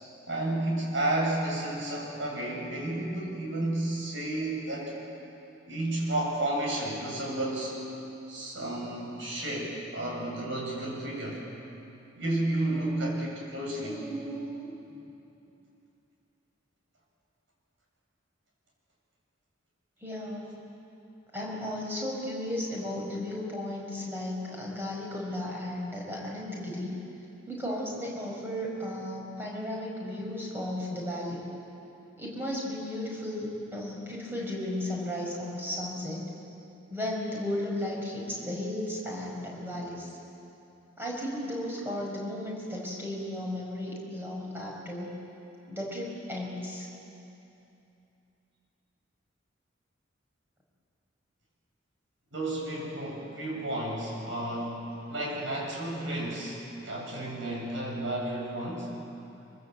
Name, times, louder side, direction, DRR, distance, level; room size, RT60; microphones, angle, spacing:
voice 1, 0.3-4.9 5.7-7.7 8.3-11.4 12.2-14.1 52.3-59.0, right 1 dB, 70° right, -2 dB, 8.0 m, -32 dB
voice 2, 12.3-13.2 13.8-15.0 20.0-20.6 21.3-27.0 27.5-31.4 32.2-36.2 36.9-40.1 41.0-45.1 45.7-46.9, left 1 dB, 10° right, -3 dB, 5.7 m, -35 dB
24.5 x 24.5 x 8.2 m, 2.8 s
head